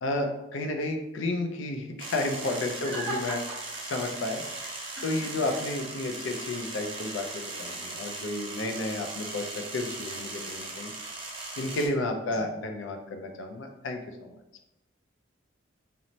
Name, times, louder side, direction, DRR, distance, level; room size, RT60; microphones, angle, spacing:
voice 1, 0.0-1.9 2.1-3.4 3.9-4.4 5.0-10.9 11.6-14.3, left 2 dB, 70° left, 5 dB, 0.4 m, -32 dB
sound 1, 2.0-11.9, right 2 dB, 25° right, 0.4 m, -38 dB
voice 2, 2.8-3.4 4.6-5.6 12.3-12.4, right 2 dB, 5° left, -11 dB, 1.1 m, -38 dB
3.0 x 2.0 x 2.6 m, 0.89 s
head